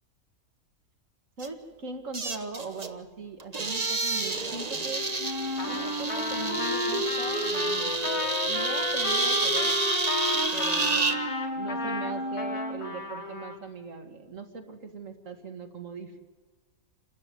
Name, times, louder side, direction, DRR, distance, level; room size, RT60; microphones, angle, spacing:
sound 1, 1.4-1.5 2.1-2.9 3.4-11.2, right 3 dB, 30° right, 1.2 m, -29 dB
voice 1, 1.4-5.1 5.7-9.8 10.5-11.2 11.6-16.2, right 4 dB, 65° right, 4 dB, 2.5 m, -40 dB
Wind instrument woodwind instrument, 5.2-12.9, left 1 dB, 40° left, 4.0 m, -33 dB
Trumpet, 5.6-13.6, left 4 dB, 80° left, 2.3 m, -35 dB
28.0 x 13.0 x 9.6 m, 1.4 s
omnidirectional pair, 1.4 m